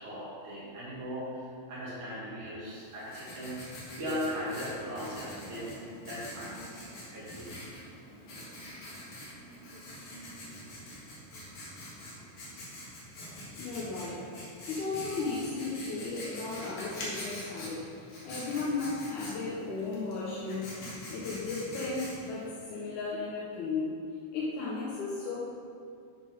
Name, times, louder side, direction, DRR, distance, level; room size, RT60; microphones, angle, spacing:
voice 1, 0.0-3.7 4.0-5.7 6.0-7.5, equal, 60° right, -8 dB, 3.7 m, -38 dB
Writing, 2.7-22.5, left 1 dB, 50° left, 2.3 m, -45 dB
voice 2, 13.6-20.7 21.1-24.0 24.3-25.4, left 3 dB, 65° left, -7 dB, 2.2 m, -35 dB
8.6 x 6.0 x 5.3 m, 2.4 s
omnidirectional pair, 4.2 m